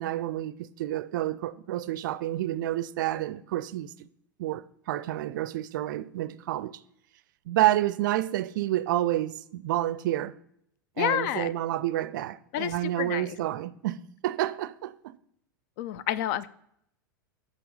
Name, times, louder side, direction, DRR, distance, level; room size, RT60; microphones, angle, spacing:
voice 1, 0.0-4.1 4.4-6.8 7.5-10.3 11.0-15.2, right 14 dB, 65° right, 0.4 m, -29 dB
voice 2, 11.0-11.5 12.5-13.4 15.8-16.5, left 12 dB, 55° left, 0.4 m, -29 dB
8.5 x 3.4 x 5.4 m
hypercardioid pair, 100°, 11 cm